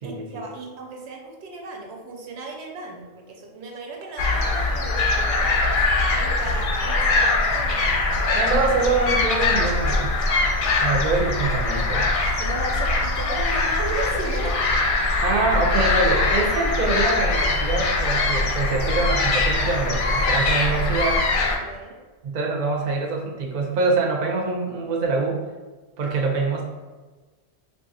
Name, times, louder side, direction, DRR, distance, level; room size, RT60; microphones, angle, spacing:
voice 1, 0.0-5.8 6.1-8.5 12.2-14.6 21.6-22.0, right 2 dB, 90° right, 1 dB, 0.9 m, -35 dB
sound 1, 4.2-21.6, left 3 dB, 60° left, 0.6 m, -22 dB
voice 2, 8.3-10.2 10.8-12.1 15.2-21.2 22.2-25.4 26.0-26.6, right 3 dB, 55° right, 1 dB, 0.6 m, -24 dB
3.3 x 2.3 x 2.6 m, 1.3 s
omnidirectional pair, 1.1 m